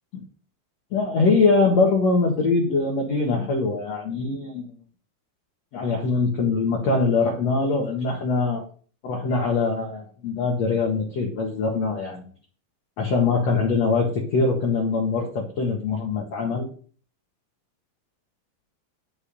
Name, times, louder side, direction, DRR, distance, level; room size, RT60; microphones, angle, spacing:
voice 1, 0.9-4.7 5.7-8.7 9.0-12.2 13.0-16.7, left 4 dB, 55° left, 0 dB, 1.9 m, -23 dB
10.5 x 7.0 x 5.4 m, 0.42 s
omnidirectional pair, 5.5 m